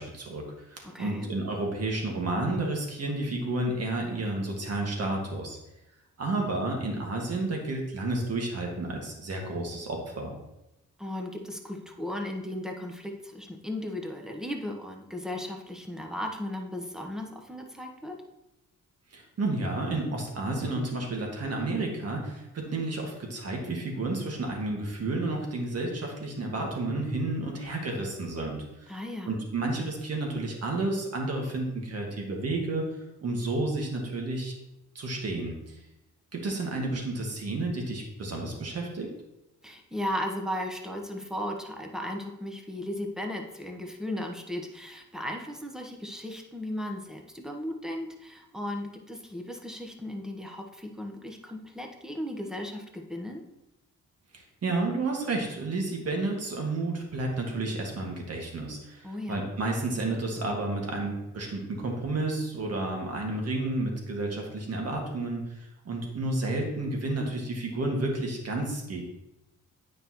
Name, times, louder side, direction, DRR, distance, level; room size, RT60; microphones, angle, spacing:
voice 1, 0.0-5.6 6.2-10.3 19.1-29.0 29.3-32.8 33.2-34.5 35.0-35.8 36.3-39.1 54.3-69.0, right 2 dB, 55° right, 1 dB, 1.8 m, -31 dB
voice 2, 0.8-1.3 11.0-18.2 28.9-29.4 39.6-53.4 59.0-59.5, left 1 dB, ahead, 2 dB, 1.1 m, -36 dB
9.1 x 5.3 x 3.0 m, 0.92 s
cardioid pair, 90°, 30 cm